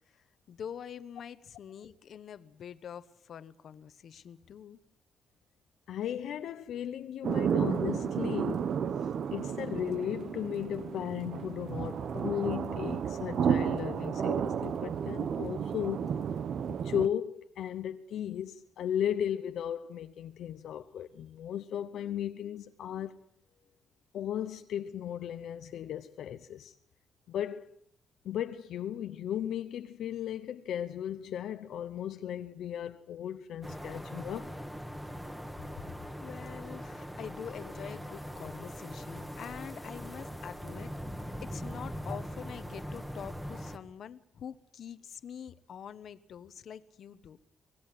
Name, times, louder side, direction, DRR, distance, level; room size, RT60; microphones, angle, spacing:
voice 1, 0.1-4.8 23.6-23.8 35.8-35.9 36.2-47.4, left 8 dB, 65° left, 1.1 m, -45 dB
voice 2, 5.9-8.8 9.3-16.1 16.7-23.2 24.1-26.7 27.3-27.8 28.2-34.6, left 10 dB, 85° left, 0.8 m, -36 dB
sound 1, 7.2-17.1, right 7 dB, 65° right, 0.9 m, -32 dB
sound 2, 33.6-43.8, equal, 5° right, 1.8 m, -41 dB
24.5 x 18.0 x 7.6 m
cardioid pair, 130°, 0 cm